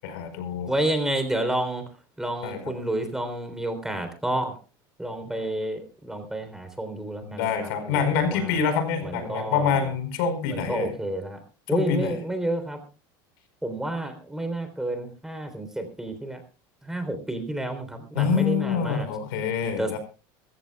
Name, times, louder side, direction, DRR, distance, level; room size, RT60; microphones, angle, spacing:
voice 1, 0.0-0.7 2.4-2.6 7.2-10.9 11.7-12.2 18.1-20.0, left 6 dB, 80° left, 9 dB, 4.7 m, -26 dB
voice 2, 0.7-1.8 2.2-4.6 5.0-8.0 8.3-8.5 9.0-9.9 10.5-11.4 11.7-12.8 13.6-16.4 16.8-19.1 19.6-20.0, right 1 dB, 5° right, 8 dB, 3.5 m, -30 dB
24.0 x 15.5 x 2.3 m, 0.31 s
supercardioid pair, 135°, 11 cm